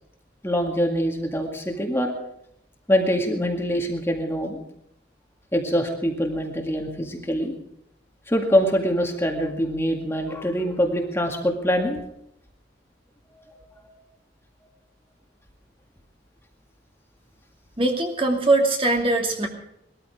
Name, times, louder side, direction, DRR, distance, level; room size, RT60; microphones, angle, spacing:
voice 1, 0.4-2.1 2.9-4.6 5.5-7.5 8.3-12.0 13.3-13.9, equal, 15° left, 2 dB, 2.0 m, -24 dB
voice 2, 17.8-19.5, right 2 dB, 30° right, 2 dB, 2.6 m, -21 dB
20.5 x 13.5 x 4.9 m, 0.78 s
head